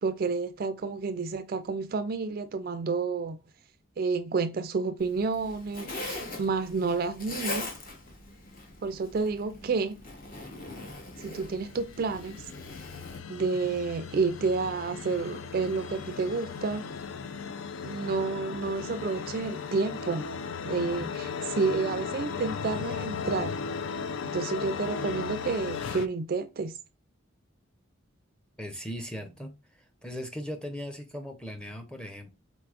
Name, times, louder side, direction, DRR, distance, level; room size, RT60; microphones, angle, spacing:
voice 1, 0.0-3.4 4.0-7.7 8.8-10.0 11.2-12.5 13.3-16.8 17.8-20.3 20.7-23.5 24.2-26.8, right 4 dB, 45° right, 0.3 m, -30 dB
Zipper (clothing), 5.0-13.2, left 2 dB, 45° left, 1.0 m, -41 dB
sound 1, 11.4-26.1, left 6 dB, 75° left, 0.4 m, -36 dB
voice 2, 28.6-29.6 30.0-32.3, equal, 5° left, 0.6 m, -38 dB
4.6 x 4.0 x 2.4 m
head